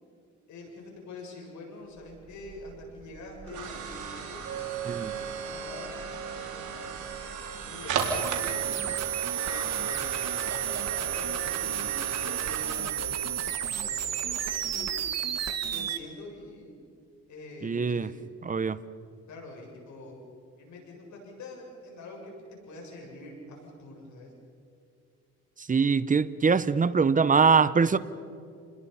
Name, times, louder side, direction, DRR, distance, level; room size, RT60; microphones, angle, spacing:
voice 1, 0.5-6.9 7.6-8.9 9.3-15.1 15.7-16.8 17.3-18.2 19.3-20.2 20.6-22.3 22.7-24.3, left 2 dB, 70° left, 0 dB, 7.4 m, -45 dB
sound 1, 2.0-15.0, right 6 dB, 80° right, 3.9 m, -37 dB
sound 2, 8.0-16.0, right 9 dB, 60° right, 1.7 m, -31 dB
voice 2, 17.6-18.1 18.4-18.8 25.6-28.0, right 5 dB, 25° right, 16 dB, 0.9 m, -23 dB
28.5 x 21.0 x 5.8 m, 2.5 s
cardioid pair, 90°, 30 cm